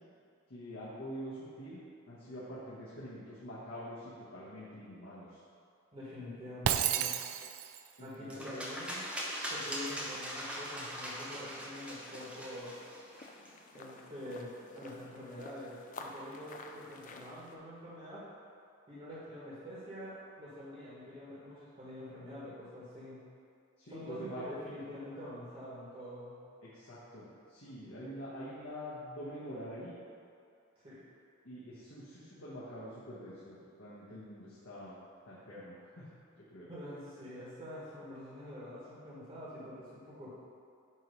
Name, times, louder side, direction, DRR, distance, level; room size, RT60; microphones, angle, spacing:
voice 1, 0.5-1.8 2.1-5.4 8.0-8.3 23.8-24.4 26.6-29.9 31.4-35.0 35.3-36.1 36.4-36.7, equal, 75° left, -9 dB, 1.3 m, -45 dB
voice 2, 5.9-7.2 8.0-9.0 9.5-12.7 13.7-18.2 18.9-23.2 23.9-26.4 30.7-31.0 36.7-40.3, left 1 dB, 30° right, -9 dB, 1.6 m, -46 dB
Shatter, 6.6-7.9, right 9 dB, 90° right, 0.4 m, -31 dB
sound 1, 8.3-13.5, equal, 5° right, 0.7 m, -41 dB
sound 2, 11.7-17.6, left 3 dB, 40° left, 0.4 m, -51 dB
8.8 x 3.2 x 5.3 m, 2.4 s
head